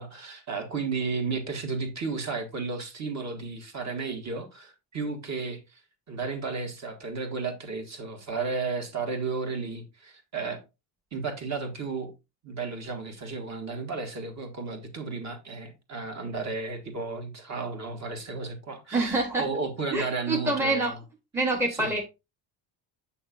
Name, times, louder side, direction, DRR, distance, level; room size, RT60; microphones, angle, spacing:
voice 1, 0.0-5.8 6.1-10.6 11.1-12.1 12.4-21.0 21.7-21.9, right 4 dB, 35° right, 1.7 m, -33 dB
voice 2, 18.9-19.5 19.9-20.9 21.3-22.0, right 2 dB, 5° right, 0.8 m, -26 dB
7.1 x 6.1 x 2.4 m
cardioid pair, 140°, 45 cm